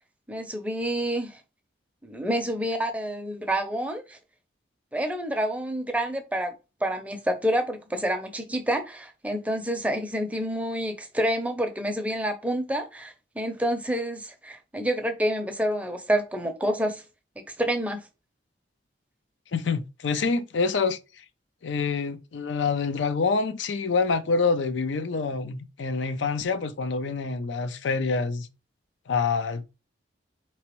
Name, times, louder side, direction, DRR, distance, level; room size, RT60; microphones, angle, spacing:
voice 1, 0.3-1.4 2.0-4.2 4.9-6.5 6.8-17.0 17.4-18.0, right 1 dB, 10° right, 0.5 m, -28 dB
voice 2, 19.5-21.0 21.6-28.5 29.1-29.6, left 4 dB, 80° left, 0.5 m, -26 dB
4.4 x 3.0 x 3.0 m
head